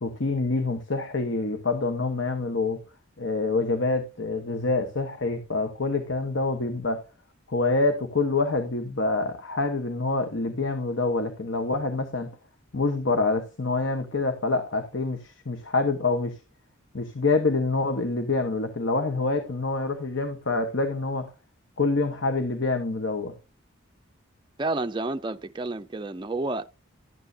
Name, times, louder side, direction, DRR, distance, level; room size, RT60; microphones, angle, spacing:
voice 1, 0.0-2.8 3.2-7.0 7.5-12.3 12.7-16.4 16.9-21.3 21.8-23.3, left 3 dB, 65° left, 1.2 m, -26 dB
voice 2, 24.6-26.7, right 2 dB, 20° right, 0.4 m, -30 dB
12.0 x 8.8 x 2.8 m
head